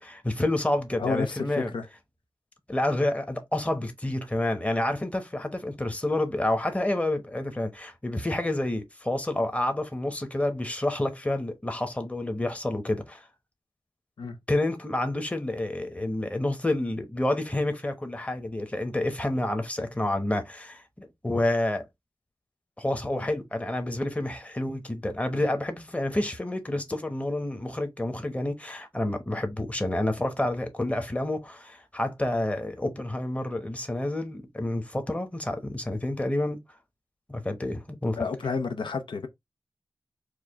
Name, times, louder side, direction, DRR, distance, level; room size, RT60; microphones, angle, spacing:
voice 1, 0.0-1.7 2.7-13.3 14.5-21.9 22.8-36.6 37.3-38.2, left 1 dB, 15° left, 0.9 m, -29 dB
voice 2, 1.0-1.9 14.2-14.4 38.2-39.3, left 4 dB, 85° left, 0.6 m, -30 dB
4.8 x 2.2 x 3.5 m
wide cardioid pair, 80°, 8 cm